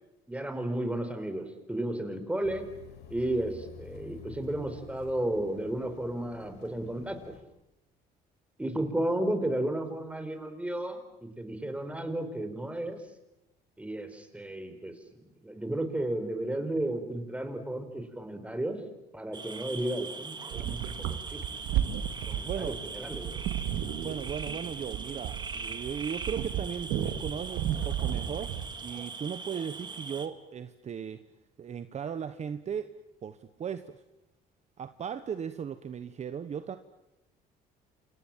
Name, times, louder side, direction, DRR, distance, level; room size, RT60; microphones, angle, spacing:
voice 1, 0.3-2.6 3.1-7.4 8.6-13.0 13.8-18.8 19.1-21.6 22.3-23.4, right 1 dB, 5° right, 8 dB, 4.5 m, -33 dB
sound 1, 2.4-7.4, left 8 dB, 80° left, 5.3 m, -49 dB
sound 2, 19.3-30.3, right 4 dB, 25° right, 2.3 m, -41 dB
sound 3, 20.5-28.8, right 10 dB, 85° right, 2.2 m, -33 dB
voice 2, 22.4-22.8 24.0-28.5 28.8-31.2 31.6-32.9 33.2-34.0 34.8-36.8, right 7 dB, 40° right, 11 dB, 1.2 m, -37 dB
28.0 x 28.0 x 7.5 m, 0.91 s
cardioid pair, 110°, 17 cm